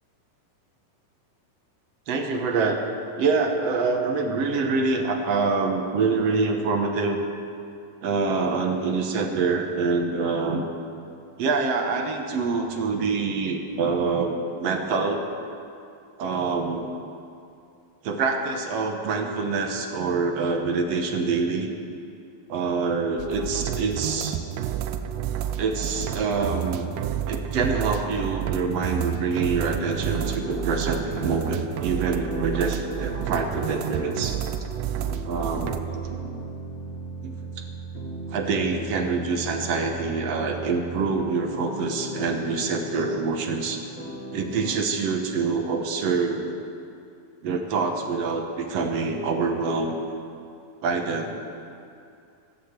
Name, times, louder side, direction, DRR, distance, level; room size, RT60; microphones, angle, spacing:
voice 1, 2.1-2.9 3.2-7.2 8.0-10.6 11.4-15.2 16.2-16.9 18.0-21.7 22.5-24.4 25.6-26.9 27.3-34.4 35.2-36.2 37.2-37.6 38.3-43.8 44.3-46.6 47.4-50.1 50.8-51.5, right 4 dB, 60° right, 3 dB, 1.8 m, -26 dB
sound 1, 23.2-35.8, right 10 dB, 90° right, 2.3 m, -30 dB
sound 2, 29.9-44.8, right 1 dB, 60° left, 0.7 m, -37 dB
13.5 x 9.9 x 8.2 m, 2.5 s
omnidirectional pair, 3.9 m